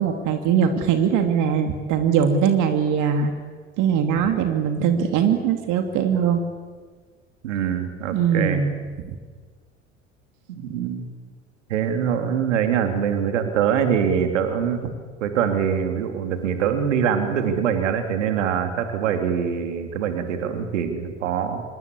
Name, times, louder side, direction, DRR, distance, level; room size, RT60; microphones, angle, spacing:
voice 1, 0.0-3.4 3.8-6.4 8.1-8.8, right 7 dB, 55° right, 6 dB, 2.6 m, -21 dB
voice 2, 7.4-8.6 10.5-11.1 11.7-14.9 15.2-21.6, right 8 dB, 70° right, 7 dB, 3.0 m, -24 dB
26.0 x 22.5 x 8.5 m, 1.6 s
figure-of-eight pair, 65°, 38 cm